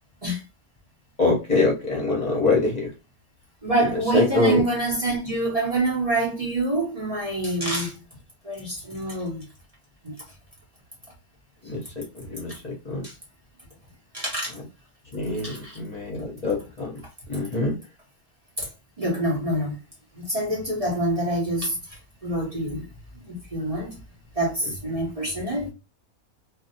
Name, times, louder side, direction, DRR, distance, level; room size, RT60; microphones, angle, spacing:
voice 1, 1.2-2.7 4.1-4.6 11.7-11.8 12.3-12.5 12.9-13.0 15.1-16.2 16.4-16.9 17.3-17.7, left 3 dB, 35° left, 0.8 m, -23 dB
voice 2, 3.6-8.0 8.4-9.5 10.0-10.1 13.0-13.1 14.1-14.5 15.3-15.8 16.6-16.7 18.6-18.7 19.0-19.8 20.1-22.8 23.3-24.0 24.4-25.7, right 1 dB, 35° right, 0.6 m, -26 dB
2.5 x 2.1 x 2.6 m
omnidirectional pair, 1.5 m